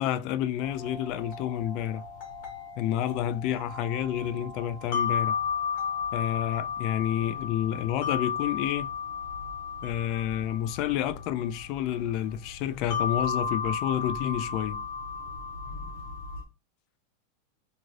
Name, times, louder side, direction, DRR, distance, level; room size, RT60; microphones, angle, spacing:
voice 1, 0.0-2.0 2.8-5.4 6.1-8.9 9.8-14.8, left 11 dB, 45° left, 0.3 m, -29 dB
sound 1, 0.6-16.4, left 6 dB, 60° left, 1.0 m, -34 dB
2.6 x 2.5 x 3.1 m
supercardioid pair, 145°, 0 cm